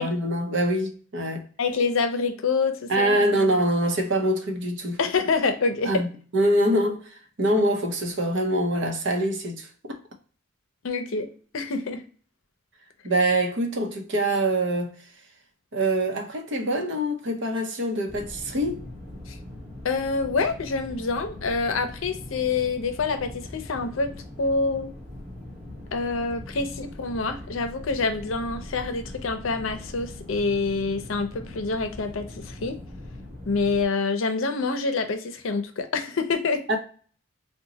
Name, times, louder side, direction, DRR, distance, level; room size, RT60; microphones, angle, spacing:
voice 1, 0.0-1.5 2.9-5.0 5.8-6.1 6.3-9.7 13.0-15.0 15.7-18.8 36.7-36.8, right 1 dB, 60° right, 0.7 m, -24 dB
voice 2, 1.6-3.4 5.0-6.0 10.8-12.0 19.3-19.4 19.8-24.1 24.4-24.9 25.9-32.8 33.5-36.7, left 4 dB, 75° left, 0.5 m, -26 dB
sound 1, 18.1-33.9, left 1 dB, 35° right, 1.1 m, -41 dB
3.8 x 2.2 x 2.7 m
head